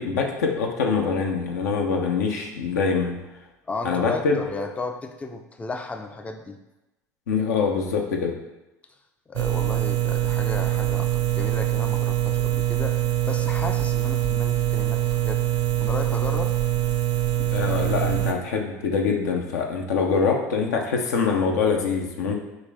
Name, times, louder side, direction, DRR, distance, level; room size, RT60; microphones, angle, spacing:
voice 1, 0.0-3.2 3.8-4.4 7.3-8.3 17.5-22.3, left 5 dB, 75° left, 2 dB, 0.6 m, -24 dB
voice 2, 3.7-6.6 9.3-13.0 13.3-15.4 15.8-16.6, left 3 dB, 15° left, 5 dB, 0.4 m, -34 dB
sound 1, 9.4-18.3, right 13 dB, 50° right, 0.4 m, -24 dB
4.0 x 2.5 x 3.4 m, 1.0 s
hypercardioid pair, 65°, 9 cm